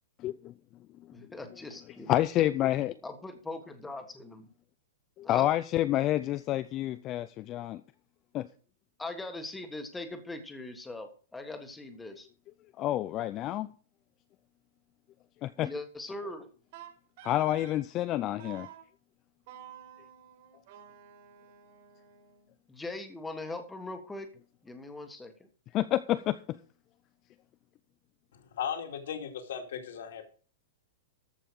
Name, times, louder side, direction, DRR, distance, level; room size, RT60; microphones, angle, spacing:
voice 1, 0.2-0.5 2.1-3.0 5.2-7.8 8.3-8.5 12.8-13.7 15.4-15.7 17.2-18.7 25.7-26.4, left 14 dB, 25° left, 13 dB, 0.5 m, -28 dB
voice 2, 1.1-2.1 3.0-4.5 5.2-5.5 9.0-12.3 15.6-16.5 22.7-24.3 24.6-25.5, left 2 dB, 5° left, 7 dB, 1.5 m, -41 dB
Wind instrument woodwind instrument, 16.7-17.8 18.4-18.8 19.5-22.5, right 9 dB, 45° right, 3.6 m, -51 dB
voice 3, 28.6-30.2, left 8 dB, 65° left, 5 dB, 2.5 m, -36 dB
14.0 x 5.7 x 6.4 m, 0.40 s
supercardioid pair, 165°, 0 cm